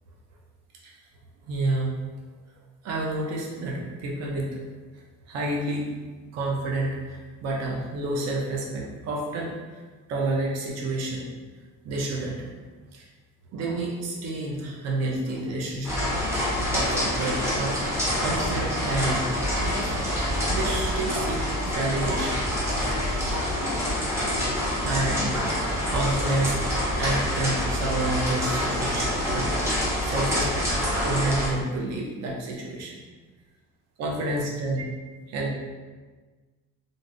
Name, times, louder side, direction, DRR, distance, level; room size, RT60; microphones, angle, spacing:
voice 1, 1.5-1.9 2.8-4.5 4.9-5.0 5.3-5.9 6.3-9.8 10.1-11.2 11.8-12.5 12.9-13.1 13.5-15.9 16.2-16.4 16.7-17.8 18.2-20.0 20.5-22.4 24.8-26.6 26.9-30.7 31.0-32.9 34.0-34.8 35.3-35.5, right 2 dB, 50° right, -2 dB, 0.5 m, -29 dB
sound 1, 15.8-31.5, equal, 10° right, 0.5 m, -26 dB
3.2 x 2.6 x 2.5 m, 1.4 s
cardioid pair, 180°, 32 cm